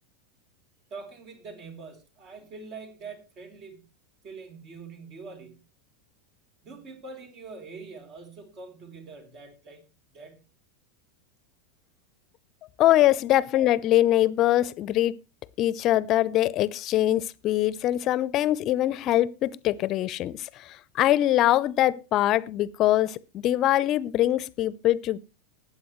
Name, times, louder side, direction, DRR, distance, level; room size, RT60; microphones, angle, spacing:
voice 1, 0.9-3.9 4.2-5.6 6.6-9.9 10.1-10.4 13.1-13.2, right 4 dB, 45° right, 3.5 m, -44 dB
voice 2, 12.8-15.2 15.6-25.2, left 14 dB, 45° left, 0.7 m, -23 dB
20.0 x 8.5 x 3.2 m
hypercardioid pair, 90°, 0 cm